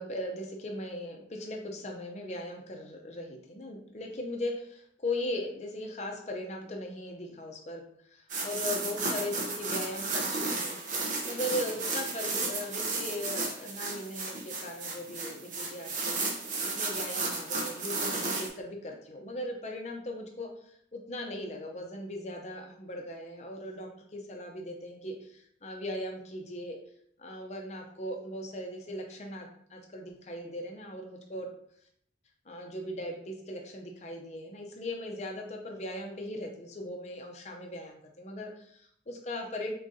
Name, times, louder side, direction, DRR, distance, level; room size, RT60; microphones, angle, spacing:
voice 1, 0.0-7.8 8.1-10.8 11.3-16.2 16.7-20.5 20.9-26.8 27.2-31.5 32.5-39.7, left 1 dB, 35° left, 2 dB, 0.6 m, -38 dB
sound 1, 8.3-18.5, right 3 dB, 45° right, 0.7 m, -33 dB
3.8 x 3.7 x 2.6 m, 0.67 s
head